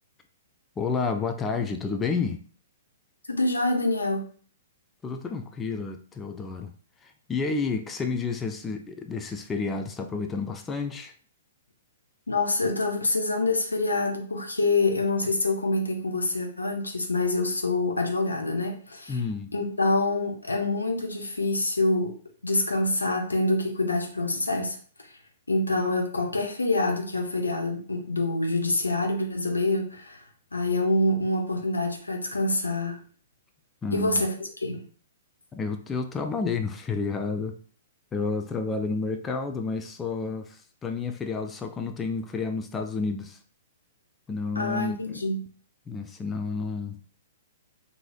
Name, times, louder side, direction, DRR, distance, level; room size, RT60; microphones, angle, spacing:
voice 1, 0.8-2.4 5.0-6.7 7.0-11.1 19.1-19.5 33.8-34.2 35.5-37.6 38.1-43.4 44.3-45.2 45.9-47.0, left 4 dB, 15° left, 0.3 m, -30 dB
voice 2, 3.3-4.3 12.3-19.2 19.5-22.2 22.4-24.8 25.5-30.2 30.5-33.1 33.9-34.3 34.6-34.8 44.6-45.4, left 2 dB, 75° left, 0.6 m, -26 dB
2.9 x 2.6 x 2.4 m
figure-of-eight pair, 110°, 0 cm